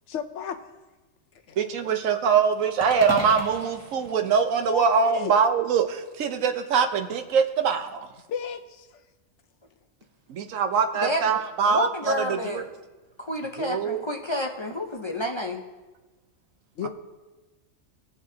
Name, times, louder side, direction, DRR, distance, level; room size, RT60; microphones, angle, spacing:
voice 1, 0.1-0.6 1.5-1.6 4.7-5.3 8.3-9.0 16.8-16.9, left 7 dB, 70° left, 7 dB, 1.0 m, -33 dB
voice 2, 1.6-8.1 10.3-12.6 13.6-14.0, right 6 dB, 85° right, 7 dB, 1.2 m, -23 dB
sound 1, 2.8-5.1, equal, 10° left, 1.1 m, -35 dB
voice 3, 10.9-11.4 11.7-12.7 13.2-15.6, left 1 dB, 30° left, 2 dB, 0.5 m, -30 dB
19.5 x 7.0 x 2.8 m, 1.2 s
omnidirectional pair, 1.3 m